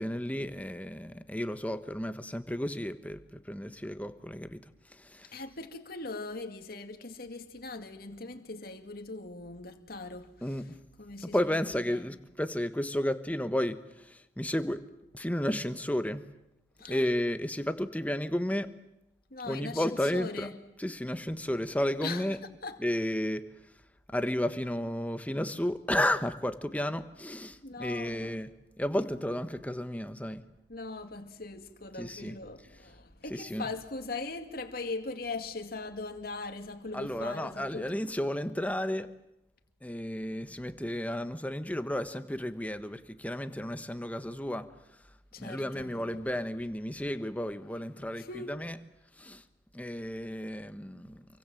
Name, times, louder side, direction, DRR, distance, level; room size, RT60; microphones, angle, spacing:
voice 1, 0.0-4.6 4.9-5.3 10.4-10.7 11.2-14.9 15.1-16.3 16.9-18.8 19.5-20.5 20.8-22.4 22.8-23.5 24.1-28.5 28.8-30.4 32.0-32.4 33.3-33.7 36.9-39.1 39.8-44.7 45.4-48.8 49.2-49.4 49.7-51.3, left 1 dB, 10° left, 1.3 m, -33 dB
voice 2, 5.3-10.4 11.0-12.0 16.8-17.1 19.3-20.5 22.0-22.2 22.6-22.8 27.6-28.4 30.7-38.0 45.3-46.2 48.2-48.5, left 3 dB, 60° left, 2.3 m, -40 dB
28.0 x 23.5 x 7.8 m
head